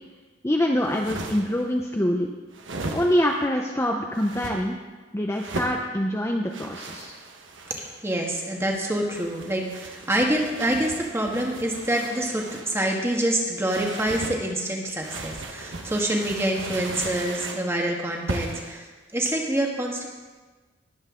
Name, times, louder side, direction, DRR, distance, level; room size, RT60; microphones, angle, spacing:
voice 1, 0.4-2.4 2.9-4.8 5.1-7.2, equal, 15° left, 1 dB, 0.6 m, -25 dB
sound 1, 0.8-1.6 2.5-3.4 4.1-4.6 5.3-5.8 6.5-8.0 8.9-12.7 13.6-14.4 15.0-17.7 18.3-18.7, right 2 dB, 70° right, 1.2 m, -37 dB
voice 2, 7.7-18.8 19.1-20.1, right 1 dB, 15° right, 0 dB, 1.5 m, -26 dB
20.5 x 8.0 x 3.7 m, 1.3 s
head